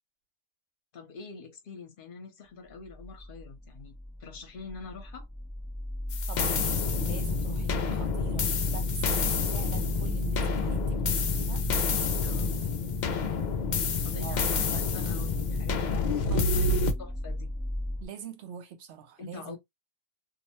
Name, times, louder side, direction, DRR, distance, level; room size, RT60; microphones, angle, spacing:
voice 1, 0.9-3.9 4.2-5.3 12.2-12.6 14.0-16.7 17.0-17.5 19.2-19.6, left 4 dB, 50° left, 0.9 m, -45 dB
sound 1, 2.7-18.1, left 1 dB, 15° right, 0.3 m, -34 dB
sound 2, 6.1-16.9, left 5 dB, 65° left, 0.4 m, -29 dB
voice 2, 6.3-11.6 14.1-14.9 16.3-16.9 18.0-19.6, right 8 dB, 70° right, 0.9 m, -43 dB
2.7 x 2.1 x 2.9 m
omnidirectional pair, 1.2 m